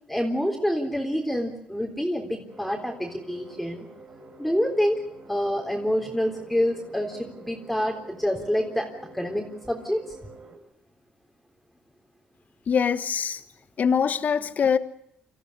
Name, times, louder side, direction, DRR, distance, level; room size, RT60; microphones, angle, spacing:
voice 1, 0.1-3.9 4.4-5.0 5.3-8.9 9.1-10.0, equal, ahead, 3.8 m, -27 dB
sound 1, 2.5-10.6, right 2 dB, 55° right, 6.2 m, -48 dB
voice 2, 12.7-13.4 13.8-14.8, left 7 dB, 50° left, 1.3 m, -23 dB
25.5 x 14.5 x 9.9 m
supercardioid pair, 70°, 3 cm